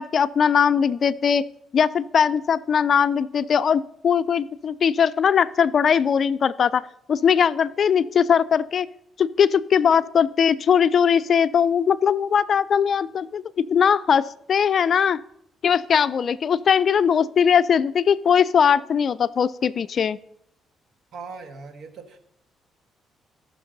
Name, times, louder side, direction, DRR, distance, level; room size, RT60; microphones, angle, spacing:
voice 1, 0.0-1.5 1.7-8.9 9.2-13.4 13.7-15.2 15.6-20.2, left 7 dB, 50° left, 15 dB, 0.4 m, -20 dB
voice 2, 21.1-22.2, right 4 dB, 65° right, 8 dB, 1.4 m, -39 dB
18.0 x 6.0 x 3.9 m, 0.75 s
cardioid pair, 90°, 0 cm